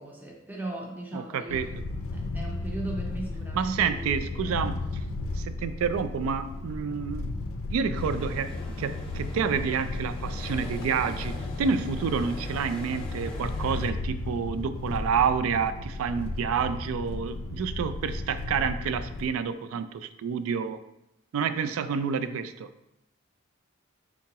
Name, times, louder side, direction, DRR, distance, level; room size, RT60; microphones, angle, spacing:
voice 1, 0.0-1.7 2.1-4.6, right 2 dB, 10° right, -1 dB, 0.6 m, -38 dB
voice 2, 1.1-1.7 3.5-5.0 5.4-7.3 7.7-20.8 21.3-22.7, right 6 dB, 85° right, 13 dB, 0.3 m, -29 dB
sound 1, 1.5-19.3, left 2 dB, 90° left, 0.4 m, -34 dB
sound 2, 7.9-13.9, left 2 dB, 25° left, 0.8 m, -42 dB
4.6 x 3.7 x 2.8 m, 0.87 s
head